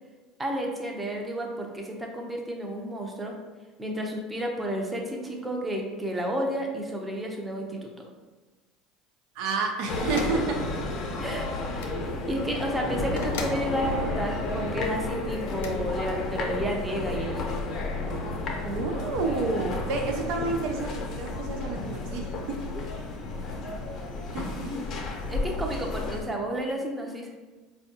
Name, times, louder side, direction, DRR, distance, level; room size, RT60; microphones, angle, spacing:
voice 1, 0.4-3.4 3.8-8.1 11.2-11.5 11.7-11.9 12.3-17.5 25.3-27.3, right 1 dB, 15° right, 1 dB, 0.6 m, -31 dB
voice 2, 9.3-10.6 18.6-22.6 24.3-24.7, right 4 dB, 70° right, 2 dB, 0.4 m, -30 dB
sound 1, 9.9-26.2, left 2 dB, 45° left, 0.7 m, -32 dB
sound 2, 10.1-10.4 11.7-12.0 13.2-13.6 15.5-15.7, left 4 dB, 85° left, 0.4 m, -36 dB
4.2 x 2.3 x 2.7 m, 1.3 s
supercardioid pair, 95°, 0 cm